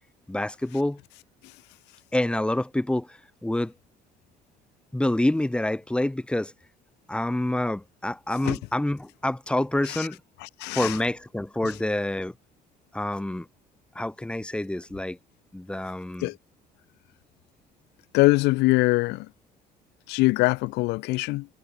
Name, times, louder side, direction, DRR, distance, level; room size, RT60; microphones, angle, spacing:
voice 1, 0.3-1.0 2.1-3.7 4.9-6.5 7.1-10.2 10.7-12.3 12.9-13.5 13.9-15.2 15.5-16.3, left 1 dB, 5° left, 1.6 m, -27 dB
voice 2, 10.6-10.9 16.2-16.3 18.1-19.3 20.1-21.5, left 22 dB, 90° left, 0.7 m, -22 dB
cardioid pair, 110°, 17 cm